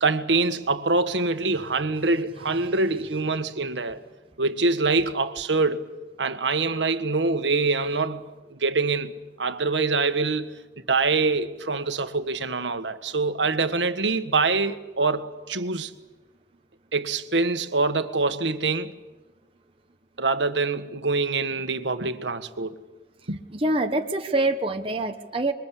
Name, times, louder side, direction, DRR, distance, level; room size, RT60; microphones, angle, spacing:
voice 1, 0.0-4.0 4.4-5.9 6.2-8.2 8.5-9.1 9.4-10.5 10.9-15.9 16.9-18.9 20.2-22.8 23.3-23.4, right 3 dB, 85° right, 1.6 m, -25 dB
voice 2, 23.5-25.5, right 2 dB, 30° right, 1.1 m, -25 dB
26.5 x 23.0 x 8.4 m
head